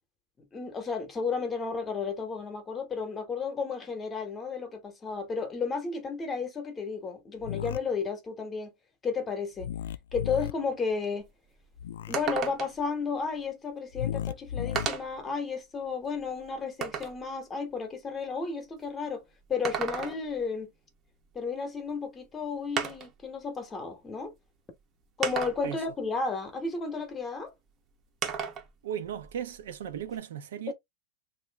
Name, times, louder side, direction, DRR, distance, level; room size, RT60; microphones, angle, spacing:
voice 1, 0.5-8.7 9.0-9.7 10.1-11.3 12.0-19.2 19.5-20.7 21.3-24.3 25.2-27.5 30.7-30.8, left 5 dB, 15° left, 0.9 m, -33 dB
sound 1, 7.4-7.8 9.6-10.5 11.8-12.1 13.9-14.9, left 10 dB, 85° left, 0.3 m, -34 dB
sound 2, 11.2-11.3 11.6-11.7 12.1-12.9 13.9-14.0 14.8-15.2 15.8-17.2 19.4-20.4 21.9-22.0 22.8-23.2 24.2-24.3 25.2-25.8 28.2-28.7 29.1-30.2, right 6 dB, 25° right, 0.8 m, -34 dB
voice 2, 28.8-30.7, right 9 dB, 75° right, 0.7 m, -36 dB
3.0 x 2.6 x 3.3 m
supercardioid pair, 145°, 0 cm